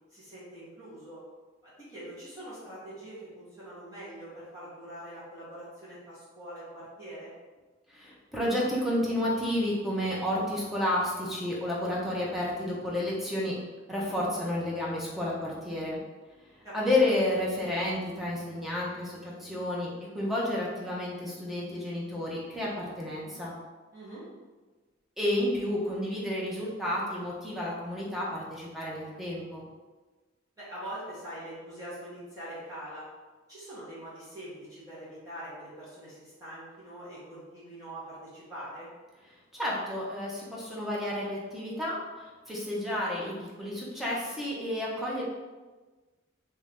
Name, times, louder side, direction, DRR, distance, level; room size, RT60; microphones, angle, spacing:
voice 1, 0.1-1.2 1.6-7.3 16.6-16.9 23.9-24.2 30.6-33.1 33.5-38.9, right 1 dB, 20° right, -12 dB, 1.2 m, -43 dB
voice 2, 7.9-13.6 13.9-16.0 16.7-23.5 25.2-29.6 39.5-42.0 42.5-45.2, left 1 dB, ahead, -5 dB, 0.7 m, -31 dB
3.1 x 2.6 x 3.5 m, 1.3 s
head